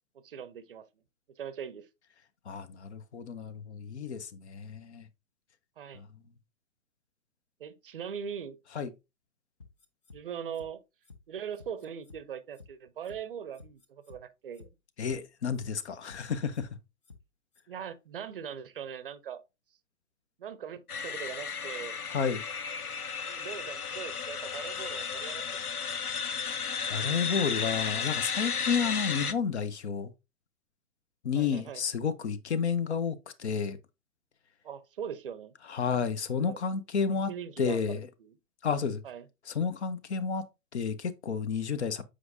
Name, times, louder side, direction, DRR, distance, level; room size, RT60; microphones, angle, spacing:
voice 1, 0.1-0.9 1.4-1.9 5.8-6.0 7.6-8.6 10.1-10.8 11.3-14.7 17.7-19.4 20.4-22.0 23.3-25.6 31.4-31.8 34.6-35.5 36.5-36.6 37.3-38.3 39.0-39.2, right 8 dB, 40° right, 0.6 m, -41 dB
voice 2, 2.5-5.1 5.9-6.1 8.7-8.9 15.0-16.7 22.1-22.4 26.9-30.1 31.2-33.8 35.7-37.3 37.6-38.1 38.6-39.0 39.5-40.5 40.7-42.0, left 6 dB, 50° left, 0.8 m, -31 dB
sound 1, 9.6-10.2 10.5-10.7 11.0-11.2 11.5-12.2 12.5-12.7 13.0-13.2 13.5-14.2 14.5-14.7 15.0-15.2 15.5-16.2 16.5-16.7 17.0-17.2 17.5-17.6, left 4 dB, 20° left, 0.4 m, -52 dB
sound 2, 20.9-29.3, left 6 dB, 80° left, 0.7 m, -34 dB
7.7 x 4.9 x 2.6 m
figure-of-eight pair, 120°, 44 cm